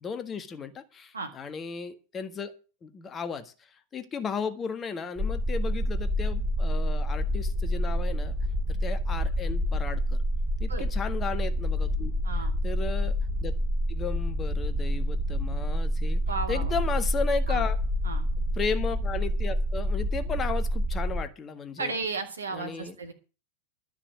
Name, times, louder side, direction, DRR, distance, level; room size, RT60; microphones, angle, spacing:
voice 1, 0.0-2.5 2.8-8.3 8.7-10.2 10.6-12.1 12.4-13.6 13.9-16.2 16.5-17.8 18.5-21.9 22.5-22.9, left 5 dB, 25° left, 9 dB, 1.6 m, -35 dB
sound 1, 5.2-21.2, equal, 15° right, 4.0 m, -28 dB
voice 2, 12.2-12.5 16.3-16.8 17.5-17.7 18.0-18.2 21.8-23.1, right 4 dB, 80° right, 4 dB, 2.8 m, -34 dB
12.5 x 6.0 x 9.2 m, 0.35 s
figure-of-eight pair, 90°, 0 cm